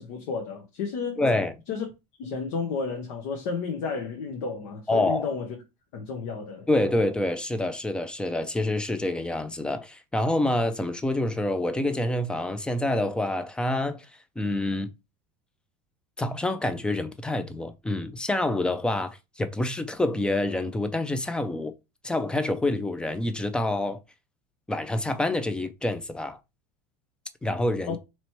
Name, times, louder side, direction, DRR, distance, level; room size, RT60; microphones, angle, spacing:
voice 1, 0.0-1.4 1.7-1.8 2.2-5.5 5.9-6.7 27.9-28.0, left 5 dB, 75° left, 0.9 m, -32 dB
voice 2, 1.2-1.5 4.9-5.3 6.7-14.1 14.4-14.9 16.2-21.7 22.0-24.0 24.7-26.4 27.4-28.0, left 1 dB, 5° left, 0.4 m, -27 dB
3.0 x 2.9 x 4.4 m
supercardioid pair, 140°, 17 cm